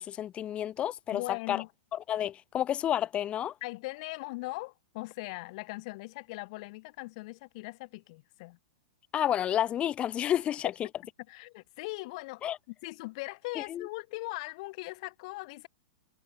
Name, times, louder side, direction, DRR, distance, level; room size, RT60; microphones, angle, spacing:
voice 1, 0.0-1.6 1.9-3.5 9.1-10.7 12.4-12.6 13.6-13.9, left 11 dB, 25° left, 0.7 m, -30 dB
voice 2, 1.1-1.7 3.6-8.6 11.3-15.7, left 24 dB, 45° left, 1.1 m, -40 dB
figure-of-eight pair, 105°, 5 cm